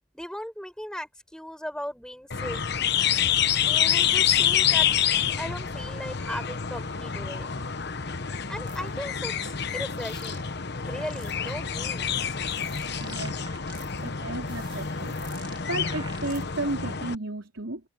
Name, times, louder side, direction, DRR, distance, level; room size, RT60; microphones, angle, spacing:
voice 1, 0.1-2.6 3.6-4.9 5.4-7.5 8.5-10.5 10.7-12.4, equal, 5° left, 7.2 m, -37 dB
sound 1, 2.3-17.2, left 8 dB, 55° left, 1.1 m, -27 dB
sound 2, 8.7-8.9 9.6-10.5 10.8-11.5 12.1-14.1 14.4-16.7, right 5 dB, 25° right, 2.8 m, -47 dB
voice 2, 13.0-13.4 14.0-15.2 15.7-17.8, right 2 dB, 75° right, 4.1 m, -33 dB
head